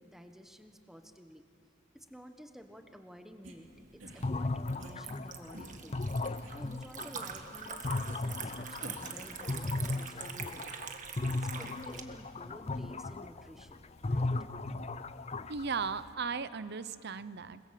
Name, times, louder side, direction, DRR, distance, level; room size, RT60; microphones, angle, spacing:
voice 1, 0.0-1.4 1.9-10.7 11.3-14.4, equal, ahead, 6 dB, 1.3 m, -52 dB
sound 1, 3.4-3.5 4.0-4.3 4.8-4.9 5.5-5.9 6.4-6.5 7.1-7.5 8.1-8.2 8.8-9.2, right 1 dB, 70° right, 3.1 m, -49 dB
Liquid, 3.6-12.0, right 7 dB, 40° right, 1.5 m, -45 dB
sound 2, 4.2-10.9 11.2-16.1, left 2 dB, 30° left, 0.5 m, -36 dB
voice 2, 15.5-17.6, right 5 dB, 55° right, 14 dB, 0.7 m, -36 dB
28.0 x 21.0 x 7.6 m, 2.6 s
head